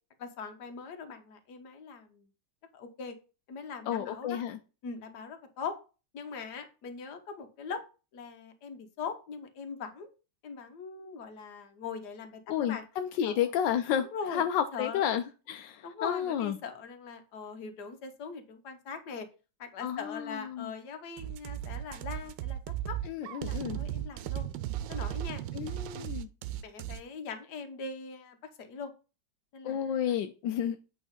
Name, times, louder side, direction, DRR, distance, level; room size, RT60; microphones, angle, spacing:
voice 1, 0.2-2.3 2.7-3.2 3.5-4.4 4.8-5.8 6.1-7.8 8.1-10.1 10.4-12.8 13.2-13.5 14.1-14.4 14.7-15.0 15.8-19.3 19.6-22.6 22.9-23.0 23.4-24.5 24.9-25.4 25.9-26.1 26.6-28.9 29.5-29.8, left 5 dB, 70° left, 1.6 m, -41 dB
voice 2, 3.9-4.6 12.5-16.6 19.8-20.7 23.1-23.8 25.5-26.3 29.6-30.8, left 9 dB, 85° left, 1.3 m, -31 dB
sound 1, 21.2-27.0, right 12 dB, 90° right, 1.3 m, -36 dB
8.4 x 3.6 x 5.1 m
omnidirectional pair, 1.9 m